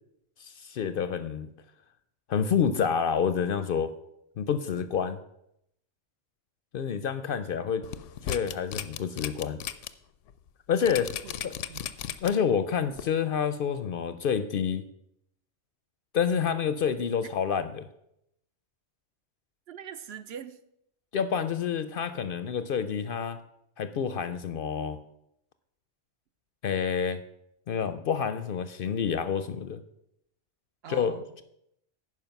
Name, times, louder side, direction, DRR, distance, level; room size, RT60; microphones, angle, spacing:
voice 1, 0.4-1.5 2.3-3.9 4.4-5.2 6.7-7.9 8.3-9.6 10.7-11.1 11.4-11.5 12.2-14.8 16.1-17.9 21.1-23.4 23.8-25.0 26.6-27.2 27.7-29.8 30.9-31.4, left 7 dB, 60° left, 12 dB, 0.6 m, -28 dB
sound 1, 7.8-9.9 10.3-10.4 10.9-12.5 13.0-13.1, left 10 dB, 90° left, 0.9 m, -35 dB
voice 2, 11.2-11.9 19.7-20.6 30.8-31.3, right 8 dB, 65° right, 11 dB, 0.8 m, -43 dB
11.0 x 4.8 x 5.9 m, 0.78 s
omnidirectional pair, 1.2 m